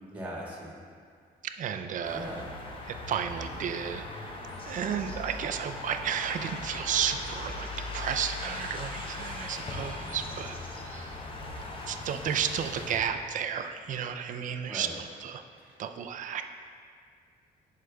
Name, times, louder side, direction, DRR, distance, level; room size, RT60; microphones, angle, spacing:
voice 1, 0.1-0.8 2.1-2.4 14.7-14.9 15.6-15.8, equal, 10° right, -4 dB, 1.7 m, -39 dB
voice 2, 1.4-2.3 2.9-7.7 7.9-10.5 10.8-11.2 11.6-15.4 15.8-16.4, right 8 dB, 50° right, 7 dB, 0.4 m, -33 dB
sound 1, 2.0-13.0, left 2 dB, 30° left, 0.8 m, -39 dB
11.0 x 4.8 x 2.3 m, 2.2 s
cardioid pair, 110°, 17 cm